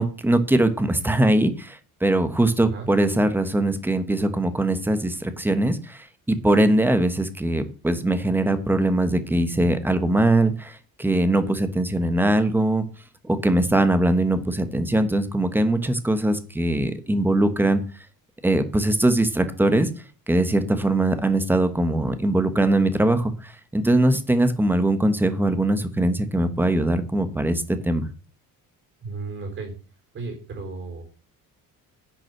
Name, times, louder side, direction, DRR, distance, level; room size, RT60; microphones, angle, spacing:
voice 1, 0.0-12.8 13.2-17.8 18.4-19.9 20.3-28.1, right 1 dB, 5° right, 10 dB, 1.2 m, -21 dB
voice 2, 29.0-29.7 30.1-31.0, right 3 dB, 35° right, 2 dB, 3.9 m, -34 dB
10.5 x 6.0 x 7.7 m, 0.37 s
cardioid pair, 165°, 35 cm